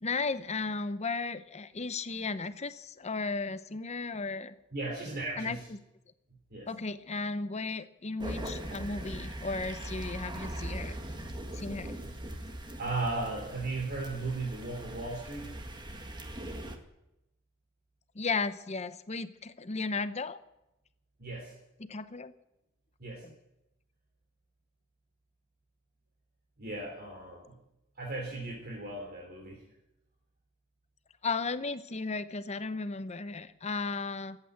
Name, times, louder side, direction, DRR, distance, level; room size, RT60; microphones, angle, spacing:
voice 1, 0.0-4.6 5.4-5.6 6.7-10.9 11.5-12.0 18.1-20.4 21.8-22.3 23.2-23.3 31.2-34.4, left 4 dB, 35° left, 13 dB, 0.8 m, -35 dB
voice 2, 4.7-5.7 6.5-6.7 12.8-15.5 21.2-21.5 23.0-23.2 26.6-27.6 28.0-29.6, right 2 dB, 50° right, 0 dB, 3.1 m, -36 dB
sound 1, 8.2-16.8, right 1 dB, 20° right, 1.6 m, -40 dB
14.0 x 8.9 x 9.4 m, 0.90 s
head